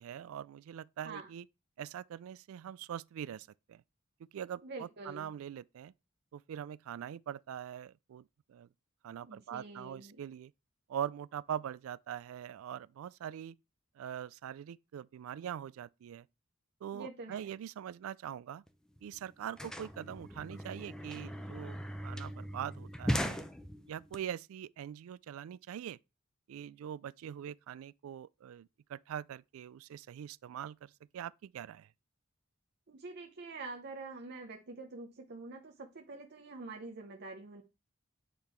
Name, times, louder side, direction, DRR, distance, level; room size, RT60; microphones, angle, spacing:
voice 1, 0.0-1.4 1.8-3.8 4.3-5.9 6.3-8.2 8.5-8.7 9.0-10.5 10.9-13.6 14.0-16.3 16.8-18.6 19.0-21.8 22.0-23.4 23.9-26.0 26.5-31.9, right 9 dB, 80° right, 0.3 m, -43 dB
voice 2, 4.6-5.3 9.2-10.2 16.9-17.5 32.9-37.6, right 3 dB, 55° right, 0.7 m, -46 dB
sound 1, 18.7-18.8 19.0-24.1, equal, 5° left, 0.5 m, -39 dB
8.6 x 3.6 x 4.5 m
head